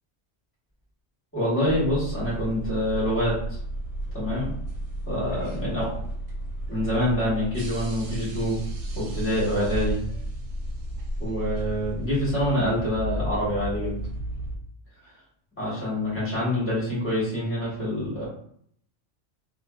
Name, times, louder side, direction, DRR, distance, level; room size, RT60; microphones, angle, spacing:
voice 1, 1.3-3.6 4.1-4.5 5.1-5.9 6.7-8.6 8.9-10.0 11.2-13.9 15.6-18.3, equal, 10° left, -8 dB, 1.2 m, -26 dB
sound 1, 1.7-14.6, right 1 dB, 80° right, 0.9 m, -33 dB
2.6 x 2.3 x 2.3 m, 0.64 s
omnidirectional pair, 1.2 m